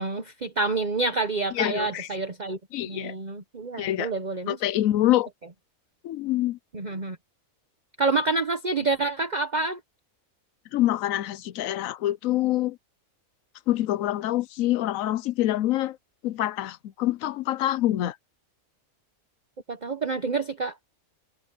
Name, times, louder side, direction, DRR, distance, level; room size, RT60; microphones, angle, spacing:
voice 1, 0.0-2.6 2.8-4.6 6.7-7.2 8.0-9.8 19.7-20.8, right 3 dB, 35° right, 1.1 m, -28 dB
voice 2, 1.5-2.1 2.7-3.1 3.8-4.1 4.5-5.3 6.0-6.6 10.7-12.8 13.7-16.0 16.2-18.2, left 14 dB, 75° left, 1.0 m, -25 dB
omnidirectional pair, 1.5 m